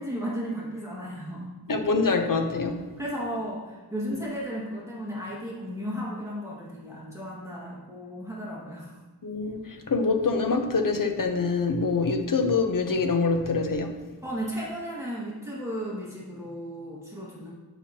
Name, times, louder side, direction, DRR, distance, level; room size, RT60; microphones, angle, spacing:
voice 1, 0.0-1.5 3.0-8.9 14.2-17.5, equal, 10° right, 1.8 m, -34 dB
voice 2, 1.7-2.9 9.2-14.0, left 4 dB, 55° left, 0.8 m, -25 dB
9.1 x 6.0 x 2.9 m
wide cardioid pair, 75°, 40 cm